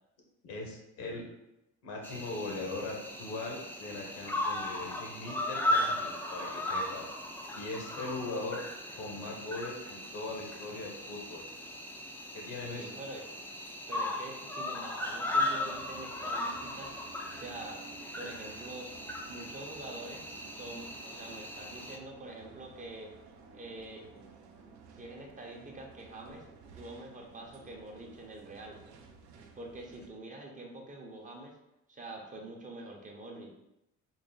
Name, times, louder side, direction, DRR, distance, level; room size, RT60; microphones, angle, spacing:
voice 1, 0.4-1.2 1.8-7.1 7.5-8.6 9.0-11.4 12.3-12.9, left 2 dB, 80° left, 0 dB, 1.1 m, -40 dB
Cricket, 2.0-22.0, left 1 dB, 5° left, 0.4 m, -37 dB
voice 2, 12.8-13.2 13.9-17.0 17.3-17.8 18.1-18.9 19.3-23.1 23.5-24.0 24.9-26.5 26.7-28.8 29.5-31.5 31.9-33.5, right 2 dB, 25° right, 0 dB, 0.7 m, -45 dB
sound 1, 15.3-30.1, right 5 dB, 65° right, 0.6 m, -54 dB
3.9 x 2.1 x 3.8 m, 0.88 s
cardioid pair, 120°, 31 cm